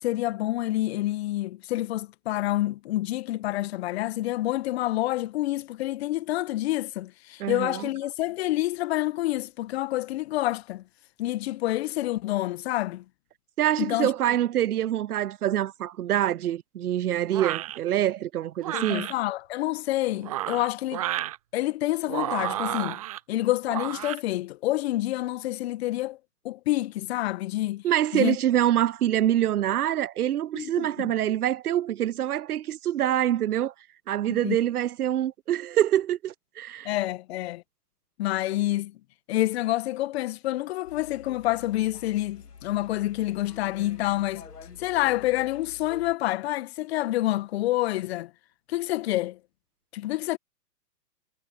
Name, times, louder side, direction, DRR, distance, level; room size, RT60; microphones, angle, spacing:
voice 1, 0.0-10.8 11.2-13.0 13.8-14.1 18.7-21.0 21.5-23.0 23.3-26.2 26.4-27.8 28.1-28.4 30.5-30.9 34.3-34.6 36.8-37.6 38.2-39.0 39.3-44.5 44.8-48.3 48.7-49.4 49.9-50.4, left 16 dB, 40° left, 1.7 m, -28 dB
voice 2, 7.4-7.9 13.6-19.1 27.8-33.7 34.1-36.9, right 12 dB, 65° right, 0.6 m, -25 dB
sound 1, 17.3-17.8 18.6-19.1 20.1-21.4 22.1-23.2 23.7-24.2, right 14 dB, 25° right, 0.5 m, -31 dB
sound 2, 40.8-46.2, left 5 dB, 75° left, 3.7 m, -47 dB
figure-of-eight pair, 120°, 48 cm